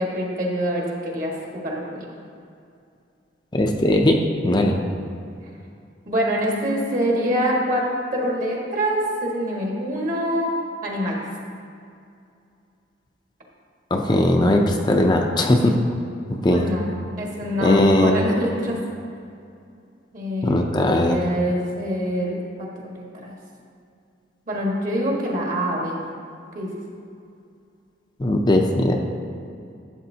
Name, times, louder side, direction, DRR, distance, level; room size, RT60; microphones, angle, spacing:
voice 1, 0.0-2.1 6.1-11.2 16.5-18.8 20.1-23.3 24.5-26.0 26.5-26.7, equal, 50° right, -2 dB, 1.5 m, -25 dB
voice 2, 3.5-4.8 13.9-15.7 16.4-16.6 17.6-18.1 20.4-21.2 28.2-29.0, left 1 dB, 25° left, 2 dB, 0.5 m, -19 dB
11.5 x 7.9 x 2.8 m, 2.5 s
head